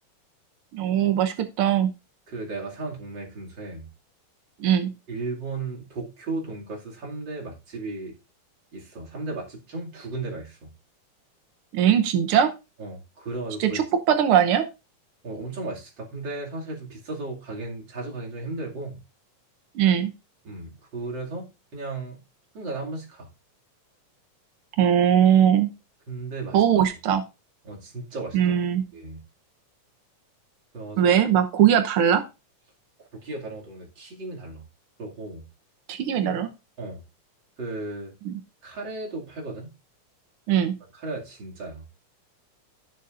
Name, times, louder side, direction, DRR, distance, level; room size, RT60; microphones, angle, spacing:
voice 1, 0.7-1.9 4.6-4.9 11.7-12.5 13.6-14.6 19.7-20.1 24.8-25.7 26.5-27.2 28.3-28.8 31.0-32.2 35.9-36.5 38.2-38.3 40.5-40.7, right 9 dB, 85° right, 1.2 m, -20 dB
voice 2, 2.3-3.9 5.1-8.2 8.7-10.7 12.8-13.8 15.2-19.0 20.4-22.2 22.5-23.3 26.1-26.6 27.6-28.6 28.9-29.2 30.7-31.2 33.0-34.6 35.0-35.4 36.1-36.4 36.8-37.0 37.6-38.1 38.6-39.7 40.9-41.8, right 3 dB, 35° right, 2.8 m, -35 dB
17.0 x 6.8 x 2.5 m
omnidirectional pair, 3.7 m